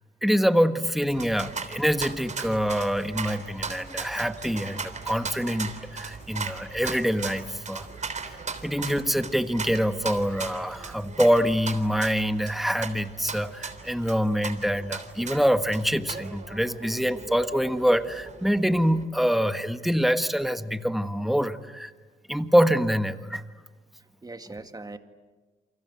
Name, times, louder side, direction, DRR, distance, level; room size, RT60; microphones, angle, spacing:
voice 1, 0.2-7.9 8.6-21.9 22.3-23.4, equal, ahead, 10 dB, 1.4 m, -25 dB
sound 1, 1.1-19.0, right 4 dB, 35° right, 3.4 m, -38 dB
voice 2, 24.2-25.0, right 3 dB, 20° right, 8 dB, 2.0 m, -42 dB
29.0 x 24.5 x 8.2 m, 1.3 s
cardioid pair, 90°, 20 cm